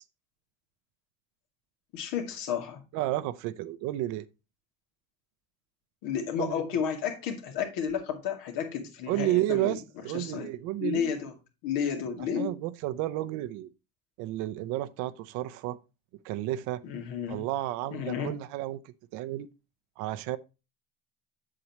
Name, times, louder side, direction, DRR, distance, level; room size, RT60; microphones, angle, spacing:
voice 1, 1.9-2.8 6.0-9.7 10.1-10.5 10.8-11.3 11.6-12.6 16.8-17.5 17.9-18.4, left 7 dB, 80° left, 2.3 m, -32 dB
voice 2, 2.9-4.3 6.4-6.6 9.1-11.1 12.4-13.7 14.2-15.8 16.2-16.8 17.3-19.5 20.0-20.4, right 15 dB, 80° right, 0.8 m, -31 dB
7.8 x 7.6 x 2.9 m
cardioid pair, 120°, 30 cm